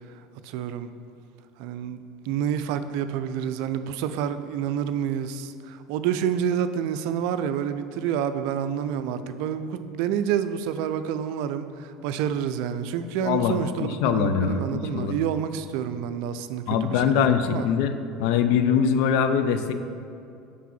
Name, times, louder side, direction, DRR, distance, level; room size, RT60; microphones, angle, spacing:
voice 1, 0.1-0.9 1.6-17.7, right 8 dB, 60° right, 11 dB, 0.3 m, -28 dB
voice 2, 13.2-15.2 16.7-19.7, left 7 dB, 60° left, 9 dB, 0.4 m, -23 dB
5.7 x 4.7 x 5.7 m, 2.5 s
figure-of-eight pair, 70°, 0 cm